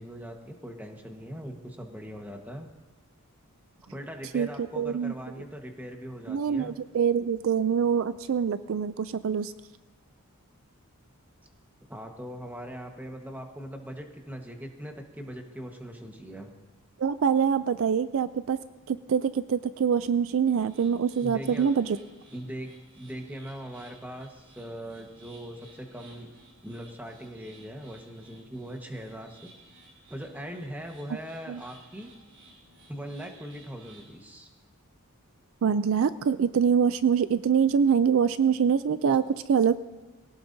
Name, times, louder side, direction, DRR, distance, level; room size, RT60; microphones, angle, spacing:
voice 1, 0.0-2.7 3.9-6.8 11.8-16.5 21.2-21.7 22.3-26.3 26.6-29.5 30.1-32.1 32.9-34.5, equal, 10° right, 3 dB, 1.3 m, -40 dB
voice 2, 4.3-5.1 6.3-9.5 17.0-18.6 18.9-22.0 31.5-31.6 35.6-39.8, right 7 dB, 60° right, 14 dB, 0.4 m, -25 dB
sound 1, 20.6-34.1, right 2 dB, 80° right, 4.9 m, -56 dB
22.5 x 17.5 x 2.7 m, 1.1 s
head